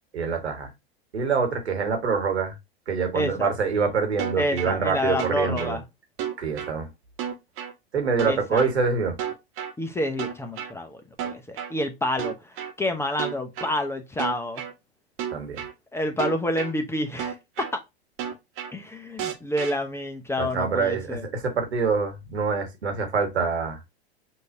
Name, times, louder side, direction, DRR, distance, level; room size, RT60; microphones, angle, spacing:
voice 1, 0.1-0.7 1.1-2.5 2.9-5.8 6.4-6.9 7.9-9.2 15.3-15.6 20.4-23.8, right 5 dB, 85° right, 1.6 m, -25 dB
voice 2, 3.1-3.5 4.4-5.8 8.2-8.6 9.8-14.6 15.9-17.8 18.7-21.2, left 1 dB, 10° left, 0.7 m, -28 dB
sound 1, 4.2-4.7 5.2-5.7 6.2-6.7 7.2-7.7 8.2-8.7 9.2-9.7 10.2-10.7 11.2-11.7 12.2-12.7 13.2-13.7 14.2-14.7 15.2-15.7 16.2-16.7 17.2-17.7 18.2-18.7 19.2-19.7, right 9 dB, 40° right, 1.2 m, -31 dB
6.2 x 2.8 x 2.7 m
hypercardioid pair, 100°, 32 cm